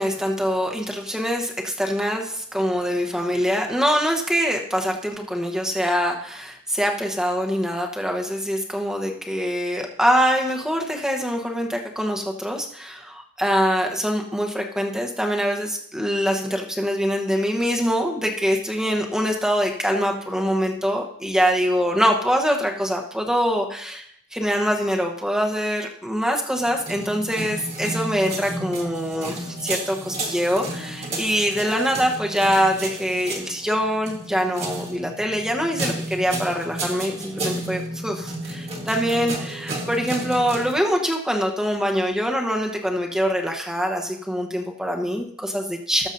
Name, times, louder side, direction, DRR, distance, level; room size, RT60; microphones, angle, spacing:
voice 1, 0.0-24.0 24.3-46.1, equal, 5° right, 2 dB, 1.0 m, -24 dB
sound 1, 26.6-40.7, right 2 dB, 30° right, 1.6 m, -32 dB
17.5 x 7.1 x 2.7 m, 0.67 s
head